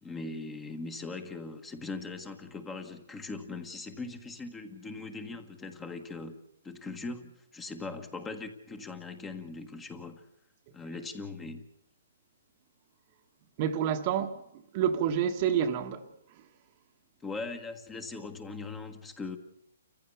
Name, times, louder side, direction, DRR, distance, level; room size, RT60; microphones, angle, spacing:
voice 1, 0.0-10.2 10.7-11.7 17.2-19.4, left 3 dB, 10° left, 1.5 m, -40 dB
voice 2, 13.6-16.0, right 8 dB, 35° right, 1.4 m, -28 dB
28.0 x 15.0 x 7.1 m
hypercardioid pair, 145°, 0 cm